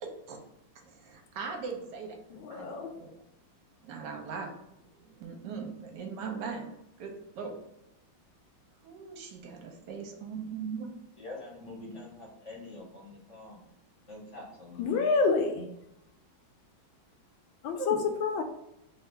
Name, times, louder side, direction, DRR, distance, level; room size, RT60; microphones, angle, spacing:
voice 1, 0.0-0.4 0.8-2.2 2.5-3.1 3.8-6.7 7.0-7.6 8.8-10.9 17.8-18.0, right 5 dB, 65° right, 2 dB, 1.2 m, -40 dB
voice 2, 2.3-2.9 14.8-15.7 17.6-18.4, left 4 dB, 80° left, 5 dB, 1.3 m, -28 dB
voice 3, 11.2-13.6 14.1-15.1, left 2 dB, 50° left, -3 dB, 1.0 m, -45 dB
3.3 x 2.4 x 4.3 m, 0.83 s
omnidirectional pair, 2.2 m